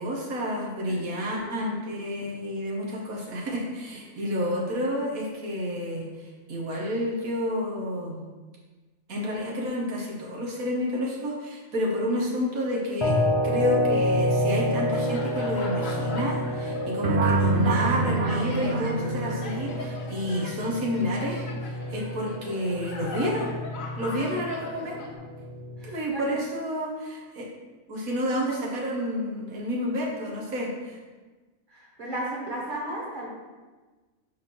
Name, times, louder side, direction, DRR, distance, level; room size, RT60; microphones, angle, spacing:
voice 1, 0.0-8.2 9.1-13.2 13.4-23.5 24.0-25.0 25.8-27.4 27.9-31.0, equal, 85° right, -3 dB, 1.6 m, -30 dB
voice 2, 1.3-1.6 24.8-25.1 25.8-26.2 31.7-33.3, right 1 dB, 35° right, -4 dB, 1.7 m, -36 dB
sound 1, 13.0-26.0, equal, 40° left, 0.4 m, -29 dB
sound 2, 14.1-25.1, left 3 dB, 70° left, 1.3 m, -41 dB
sound 3, 17.0-19.9, right 3 dB, 65° right, 0.5 m, -26 dB
4.8 x 4.4 x 6.0 m, 1.3 s
omnidirectional pair, 1.4 m